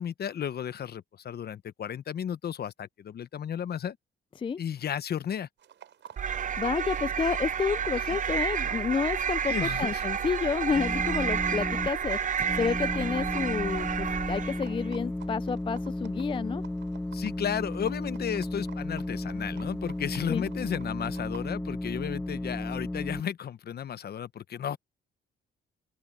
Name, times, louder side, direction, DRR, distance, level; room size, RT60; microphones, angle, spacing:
voice 1, 0.0-4.0 4.6-5.5 8.0-8.2 9.5-10.1 17.1-24.8, left 9 dB, 55° left, 1.0 m, -34 dB
sound 1, 5.6-21.5, right 10 dB, 65° right, 6.3 m, -53 dB
sound 2, 6.2-14.7, right 7 dB, 40° right, 0.6 m, -30 dB
voice 2, 6.6-16.6 20.3-20.4, left 6 dB, 25° left, 0.4 m, -30 dB
sound 3, 10.7-11.9 12.4-23.2, left 1 dB, 10° left, 1.0 m, -34 dB
open air
cardioid pair, 90°, 20 cm